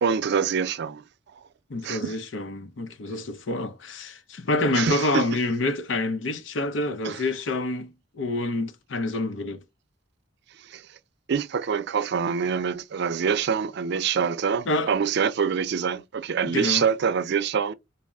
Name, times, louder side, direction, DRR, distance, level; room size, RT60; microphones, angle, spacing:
voice 1, 0.0-1.0 1.8-2.1 4.7-5.2 7.0-7.2 10.7-10.8 11.3-17.7, right 6 dB, 60° right, 0.4 m, -25 dB
voice 2, 1.7-9.6 14.7-14.9 16.4-16.8, left 2 dB, 75° left, 0.6 m, -27 dB
4.1 x 2.0 x 3.5 m
head